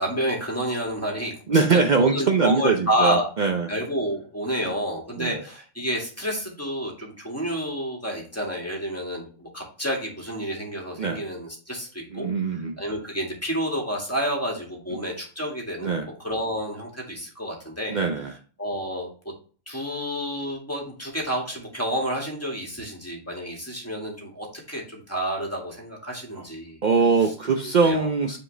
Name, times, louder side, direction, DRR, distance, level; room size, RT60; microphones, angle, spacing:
voice 1, 0.0-3.3 3.7-12.3 12.8-18.0 18.6-19.1 19.7-26.8 27.6-28.1, equal, 10° left, -1 dB, 2.0 m, -29 dB
voice 2, 1.5-3.7 4.6-4.7 5.2-5.4 11.0-11.2 12.1-12.8 15.8-16.1 17.9-18.3 26.4-26.5 26.8-28.4, right 4 dB, 60° right, 4 dB, 0.4 m, -22 dB
8.3 x 4.8 x 3.3 m, 0.39 s
omnidirectional pair, 1.6 m